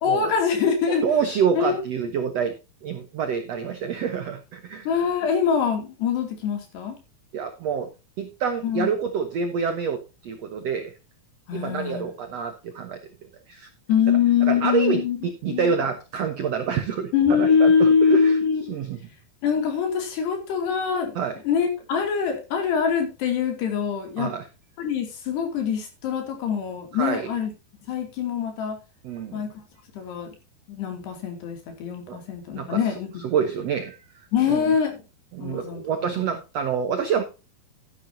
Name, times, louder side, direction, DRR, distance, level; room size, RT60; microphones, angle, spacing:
voice 1, 0.0-1.0 1.6-1.8 4.9-7.0 8.6-8.9 11.5-12.1 13.9-15.2 15.5-15.8 17.1-18.8 19.4-24.3 24.8-27.5 27.9-28.8 29.3-29.6 29.9-30.3 30.7-33.1 34.3-35.0 35.4-35.8 36.1-36.2, left 7 dB, 85° left, 4 dB, 4.8 m, -23 dB
voice 2, 1.0-2.5 2.8-4.9 7.3-7.9 8.2-10.9 11.5-13.0 13.5-13.7 14.5-18.4 18.7-19.0 21.1-21.3 24.2-24.4 26.9-27.3 29.0-29.4 32.1-32.2 32.6-32.8 33.2-34.7 35.3-37.2, right 7 dB, 85° right, 7 dB, 1.4 m, -27 dB
13.0 x 10.5 x 2.8 m, 0.28 s
omnidirectional pair, 4.7 m